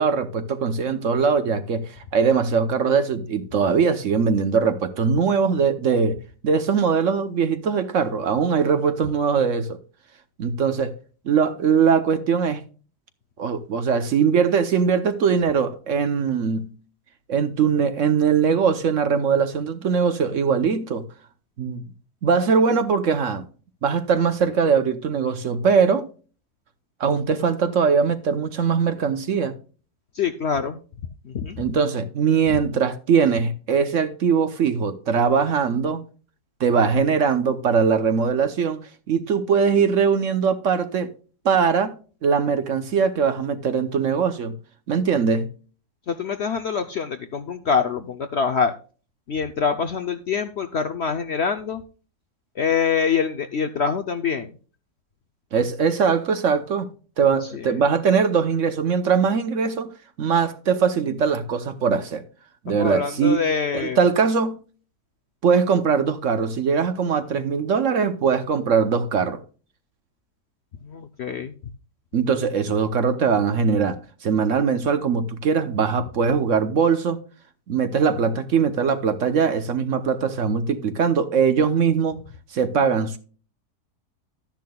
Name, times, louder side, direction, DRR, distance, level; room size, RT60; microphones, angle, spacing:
voice 1, 0.0-6.2 6.4-9.8 10.4-10.9 11.2-12.6 13.4-16.7 17.3-21.0 21.6-21.8 22.2-23.4 23.8-26.1 27.0-29.5 31.6-36.0 36.6-38.8 39.1-41.1 41.4-44.6 44.9-45.5 55.5-56.9 57.2-59.9 60.2-62.2 62.6-63.4 63.7-64.6 65.4-69.4 72.1-77.2 77.7-82.2 82.5-83.2, right 6 dB, 60° right, 1.0 m, -21 dB
voice 2, 30.1-30.8 31.2-31.7 46.1-48.7 49.3-51.8 52.6-54.5 57.4-57.7 62.7-64.0 70.8-71.5, left 6 dB, 60° left, 0.7 m, -25 dB
12.5 x 10.5 x 2.2 m
omnidirectional pair, 1.7 m